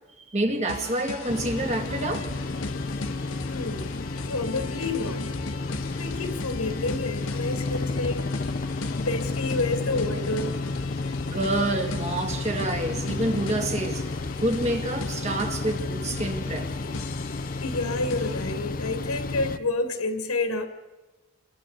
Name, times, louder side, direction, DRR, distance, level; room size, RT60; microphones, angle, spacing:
voice 1, 0.2-2.6 5.7-6.1 11.3-16.7 17.4-17.5, right 1 dB, 30° right, 2.0 m, -28 dB
sound 1, 0.7-18.6, left 3 dB, 70° left, 1.3 m, -39 dB
sound 2, 1.3-19.6, left 3 dB, 40° left, 0.7 m, -31 dB
voice 2, 3.5-4.0 4.2-5.3 5.9-8.2 8.9-10.6 17.6-20.7, left 2 dB, 90° left, 2.3 m, -29 dB
29.5 x 22.0 x 4.1 m
head